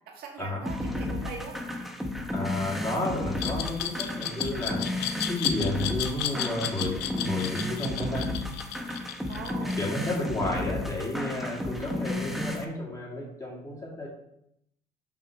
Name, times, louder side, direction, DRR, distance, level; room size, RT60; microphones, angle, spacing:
voice 1, 0.1-1.6 9.3-9.8, right 5 dB, 65° right, 1 dB, 1.7 m, -40 dB
sound 1, 0.7-12.7, left 1 dB, ahead, 0.8 m, -33 dB
voice 2, 2.3-8.3 9.8-14.1, left 1 dB, 20° left, -4 dB, 2.5 m, -32 dB
Glass, 3.4-10.2, left 11 dB, 90° left, 0.6 m, -33 dB
5.9 x 3.7 x 5.8 m, 0.79 s
cardioid pair, 110°, 17 cm